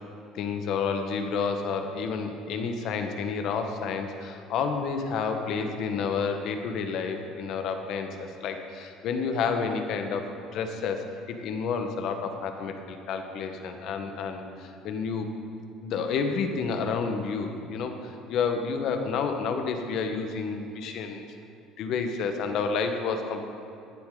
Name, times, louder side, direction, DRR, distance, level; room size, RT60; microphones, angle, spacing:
voice 1, 0.3-15.3 15.8-21.2 21.8-23.4, left 5 dB, 65° left, 5 dB, 1.3 m, -30 dB
15.0 x 10.5 x 3.9 m, 2.7 s
supercardioid pair, 80°, 0 cm